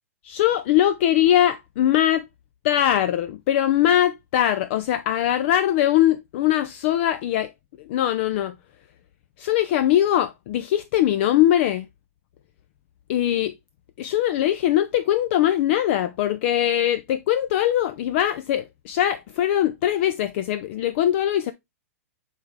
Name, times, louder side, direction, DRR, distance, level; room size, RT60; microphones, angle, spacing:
voice 1, 0.2-2.2 2.6-7.5 7.8-8.5 9.4-11.9 13.1-13.5 14.0-21.5, left 12 dB, 50° left, 0.5 m, -21 dB
8.2 x 3.6 x 3.4 m
hypercardioid pair, 135°, 8 cm